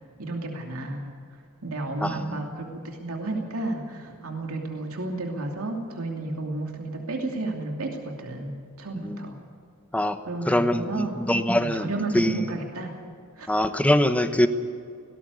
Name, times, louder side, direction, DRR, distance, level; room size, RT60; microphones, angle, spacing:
voice 1, 0.2-1.2 1.6-9.3 10.3-11.1 11.6-13.0 13.4-13.6, right 2 dB, 70° right, 1 dB, 2.7 m, -32 dB
voice 2, 2.0-2.4 9.0-9.3 9.9-10.2 10.5-11.9 12.1-12.4 13.5-14.5, left 1 dB, 5° left, 9 dB, 1.0 m, -23 dB
18.5 x 18.0 x 8.3 m, 2.4 s
head